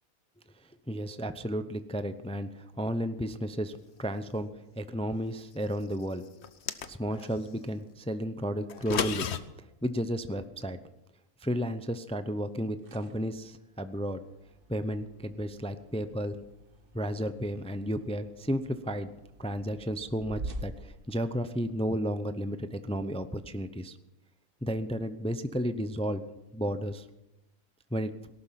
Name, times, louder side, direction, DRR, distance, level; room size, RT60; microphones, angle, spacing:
voice 1, 0.9-4.5 4.8-6.2 6.9-9.3 9.8-10.8 11.4-14.2 14.7-16.4 16.9-19.1 19.4-24.0 24.6-26.2 26.5-27.0 27.9-28.1, equal, 10° left, 11 dB, 0.4 m, -33 dB
sound 1, 6.4-7.3 8.7-9.4, left 7 dB, 55° left, 1.0 m, -32 dB
sound 2, 12.5-21.9, right 2 dB, 45° right, 1.2 m, -47 dB
18.0 x 12.0 x 5.9 m, 0.92 s
omnidirectional pair, 1.5 m